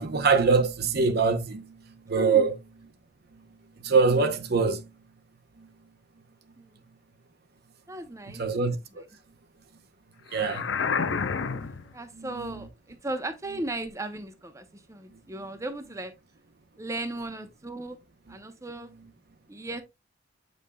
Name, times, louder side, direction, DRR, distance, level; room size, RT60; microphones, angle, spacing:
voice 1, 0.0-1.6 2.1-2.5 3.8-4.8 8.4-8.7 10.3-10.6, right 4 dB, 55° right, 0.8 m, -23 dB
voice 2, 2.1-2.5 6.6-6.7 7.9-8.4 10.7-11.0 11.9-16.1 16.8-18.0 18.3-18.9 19.5-19.8, right 1 dB, 15° right, 0.7 m, -36 dB
sound 1, 10.3-11.9, left 5 dB, 70° left, 0.7 m, -29 dB
7.9 x 5.4 x 2.2 m
head